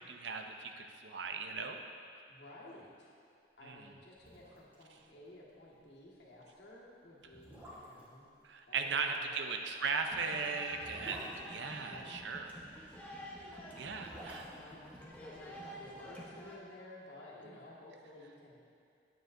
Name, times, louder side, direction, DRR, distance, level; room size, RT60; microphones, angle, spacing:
voice 1, 0.0-1.8 3.6-3.9 8.4-12.5 13.4-14.4, right 5 dB, 80° right, 5 dB, 0.5 m, -38 dB
voice 2, 2.3-3.1 3.6-8.3 8.7-9.6 11.8-12.3 14.1-18.5, left 1 dB, 70° left, -6 dB, 1.6 m, -54 dB
sound 1, 4.1-4.8 5.1-5.2 5.6-5.8 6.5-6.6 7.2-8.1 9.7-12.3 13.6-15.8 16.1-16.2, equal, 10° right, 1.7 m, -52 dB
sound 2, 10.0-16.6, equal, 10° left, 0.8 m, -49 dB
8.9 x 8.9 x 2.6 m, 2.4 s
head